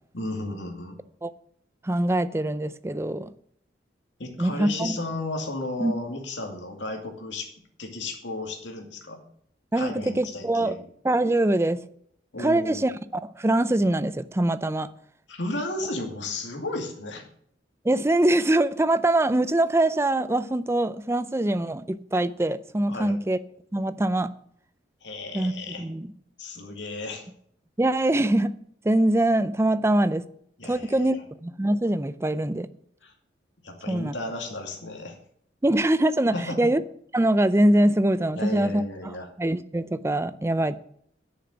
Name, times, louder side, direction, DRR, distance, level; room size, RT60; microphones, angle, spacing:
voice 1, 0.1-1.0 4.2-7.5 7.8-9.2 9.7-10.8 12.3-12.9 15.3-17.3 22.9-23.2 25.0-25.8 26.4-27.3 30.6-31.2 33.0-33.1 33.6-35.2 36.3-36.6 38.3-39.3, left 2 dB, 75° left, 2.4 m, -34 dB
voice 2, 1.8-3.3 4.4-5.0 5.8-6.0 9.7-10.8 11.0-11.8 12.4-14.9 17.8-23.4 23.7-24.3 25.3-26.1 27.8-28.5 28.8-30.2 30.6-31.2 31.4-32.7 33.9-34.1 35.6-36.8 37.1-38.8 39.4-40.8, right 1 dB, 15° right, 0.4 m, -23 dB
9.8 x 6.8 x 7.7 m
head